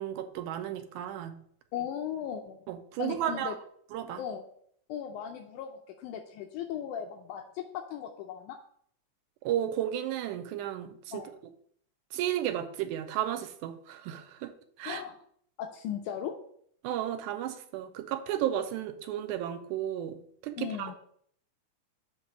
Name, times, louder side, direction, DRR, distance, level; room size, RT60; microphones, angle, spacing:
voice 1, 0.0-1.4 2.7-3.5 3.9-4.2 9.4-11.3 12.1-15.0 16.8-21.0, right 11 dB, 80° right, 8 dB, 2.0 m, -33 dB
voice 2, 1.7-2.6 3.0-3.6 4.2-4.4 4.9-8.6 11.1-11.3 14.9-15.2 15.6-16.4 20.6-21.0, left 9 dB, 80° left, 4 dB, 2.0 m, -37 dB
7.7 x 2.9 x 5.9 m, 0.64 s
omnidirectional pair, 3.5 m